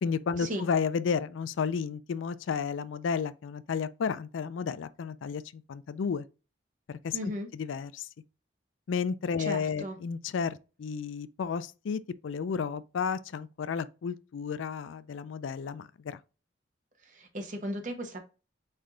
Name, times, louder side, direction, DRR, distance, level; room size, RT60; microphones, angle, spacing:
voice 1, 0.0-6.3 6.9-7.2 7.5-8.1 8.9-16.2, left 6 dB, 85° left, 0.4 m, -32 dB
voice 2, 7.1-7.5 9.4-10.0 17.0-18.2, equal, 40° right, 1.1 m, -36 dB
4.3 x 3.3 x 3.7 m
head